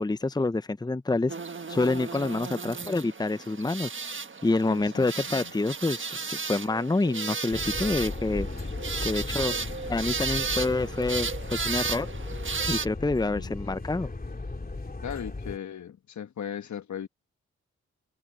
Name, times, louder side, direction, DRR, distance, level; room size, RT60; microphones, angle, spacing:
voice 1, 0.0-1.3 1.7-3.9 4.4-8.5 9.0-9.5 9.9-12.1 12.7-14.1, left 2 dB, 15° left, 0.8 m, -27 dB
sound 1, 1.3-12.9, right 5 dB, 40° right, 1.5 m, -34 dB
voice 2, 4.7-5.5 13.3-13.6 15.0-17.1, left 8 dB, 70° left, 1.6 m, -38 dB
sound 2, 7.5-15.6, left 3 dB, 30° left, 3.5 m, -36 dB
supercardioid pair, 45°, 30 cm